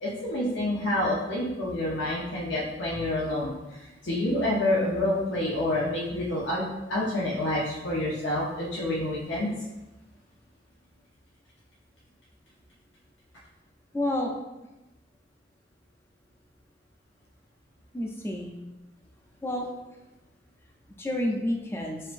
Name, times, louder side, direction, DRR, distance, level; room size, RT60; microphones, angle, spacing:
voice 1, 0.0-3.5 4.0-9.5, left 1 dB, 85° left, -6 dB, 0.8 m, -28 dB
voice 2, 13.9-14.3 17.9-18.5 19.4-19.7 21.0-22.0, left 1 dB, 15° left, 0 dB, 0.4 m, -29 dB
6.4 x 2.6 x 2.5 m, 1.0 s
head